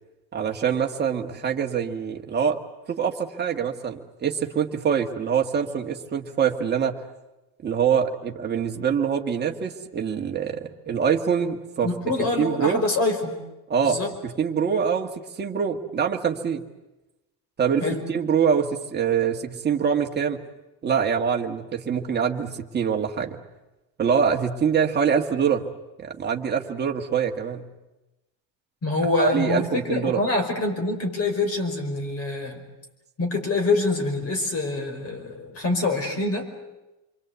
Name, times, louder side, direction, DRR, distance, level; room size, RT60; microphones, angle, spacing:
voice 1, 0.3-2.6 2.9-7.0 7.6-11.9 12.4-12.8 13.7-16.6 17.6-17.8 18.1-20.4 20.8-23.4 24.0-25.7 26.0-27.7 29.2-30.2, right 7 dB, 25° right, 2 dB, 1.7 m, -24 dB
voice 2, 11.8-13.4 13.8-14.1 17.8-18.1 28.8-32.6 33.2-36.5, left 2 dB, 35° left, 5 dB, 5.1 m, -25 dB
28.0 x 23.5 x 8.2 m, 1.0 s
cardioid pair, 170°, 42 cm